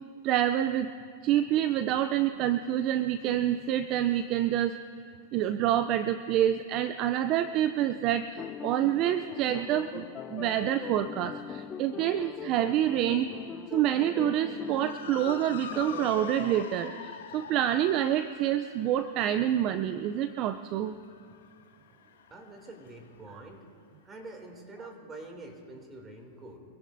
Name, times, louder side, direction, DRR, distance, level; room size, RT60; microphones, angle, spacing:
voice 1, 0.2-0.9 1.2-4.7 5.3-10.1 10.3-13.3 13.7-20.9, right 11 dB, 45° right, 11 dB, 0.5 m, -27 dB
sound 1, 8.3-16.6, left 8 dB, 25° left, 0.6 m, -41 dB
Motor vehicle (road) / Siren, 14.6-23.1, left 8 dB, 80° left, 1.2 m, -45 dB
voice 2, 22.3-23.6 24.0-26.6, right 2 dB, 20° right, 3 dB, 2.7 m, -46 dB
25.0 x 17.0 x 2.7 m, 2.4 s
hypercardioid pair, 115°, 0 cm